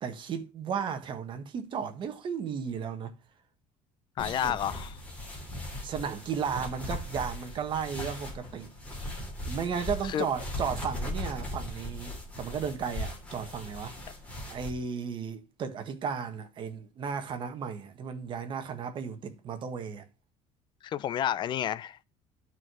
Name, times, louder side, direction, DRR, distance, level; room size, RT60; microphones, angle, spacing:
voice 1, 0.0-3.1 4.4-4.6 5.8-8.7 9.5-13.9 14.5-20.0, right 6 dB, 35° right, 1.4 m, -34 dB
voice 2, 4.2-4.9 10.0-10.2 20.8-22.0, left 10 dB, 35° left, 0.5 m, -30 dB
sound 1, 4.2-14.7, left 1 dB, 10° left, 3.1 m, -38 dB
11.0 x 4.8 x 6.2 m
cardioid pair, 175°, 14 cm